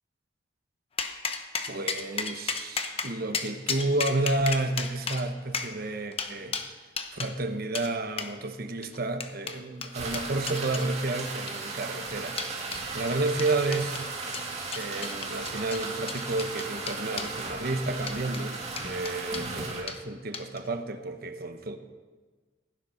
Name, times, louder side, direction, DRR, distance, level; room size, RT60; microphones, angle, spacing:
sound 1, 1.0-7.3 7.7-7.9 8.2-8.3 8.8-10.9 11.4-11.8 12.4-12.8 13.4-14.1 14.3-17.3 18.0-18.4 18.8-19.5 19.9-20.0 20.3-20.7, left 5 dB, 30° left, 0.9 m, -34 dB
voice 1, 1.7-6.5 7.1-14.0 14.7-21.8, right 2 dB, 55° right, 8 dB, 1.0 m, -31 dB
sound 2, 9.9-19.8, right 3 dB, 35° right, 2.0 m, -36 dB
15.5 x 9.7 x 5.8 m, 1.4 s
head